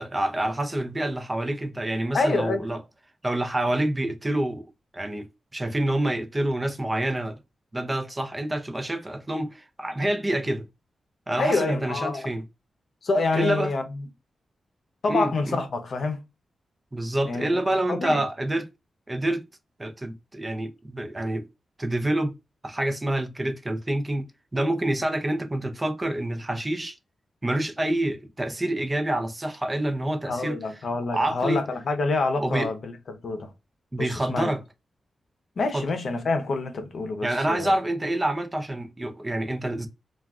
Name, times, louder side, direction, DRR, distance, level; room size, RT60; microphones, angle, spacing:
voice 1, 0.0-2.8 3.2-7.4 7.7-10.7 11.3-12.4 13.3-13.7 15.1-15.6 16.9-18.7 19.1-19.4 19.8-21.5 21.8-22.4 22.6-24.2 24.5-27.0 27.4-30.6 31.1-31.6 32.4-32.7 33.9-34.6 35.7-35.9 37.2-39.9, right 1 dB, 25° right, 0.5 m, -27 dB
voice 2, 2.1-2.7 11.4-12.3 13.0-13.8 15.0-16.2 17.3-17.6 17.9-18.2 30.3-32.9 33.2-33.5 34.0-34.5 35.6-37.7, left 3 dB, 65° left, 0.6 m, -27 dB
2.3 x 2.3 x 3.4 m
cardioid pair, 60°, 0 cm